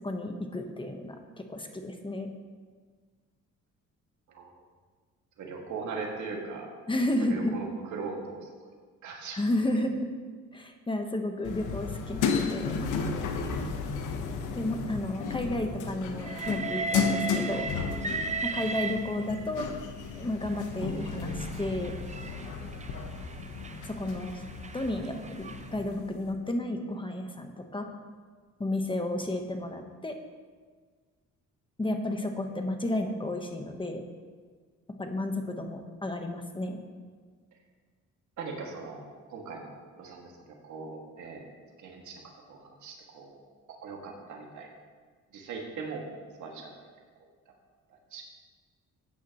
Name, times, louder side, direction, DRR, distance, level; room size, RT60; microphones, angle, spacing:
voice 1, 0.0-2.3 6.9-7.6 9.3-10.1 10.5-12.8 14.6-17.7 18.4-19.7 20.2-21.9 23.8-24.4 24.7-27.9 28.6-30.2 31.8-34.0 35.0-36.8, left 1 dB, 15° left, 4 dB, 1.2 m, -32 dB
voice 2, 5.4-6.7 7.3-8.7 9.0-9.4 38.4-40.3 40.6-41.5 41.8-42.2 42.5-43.4 43.7-44.7 45.3-46.1 46.4-46.9 47.9-48.3, right 4 dB, 75° right, 0 dB, 2.3 m, -40 dB
sound 1, 11.4-26.2, left 5 dB, 85° left, 1.2 m, -34 dB
Train, 16.2-19.6 20.5-25.7, right 3 dB, 25° right, 0.6 m, -37 dB
15.0 x 9.2 x 3.1 m, 1.5 s
cardioid pair, 90°, 30 cm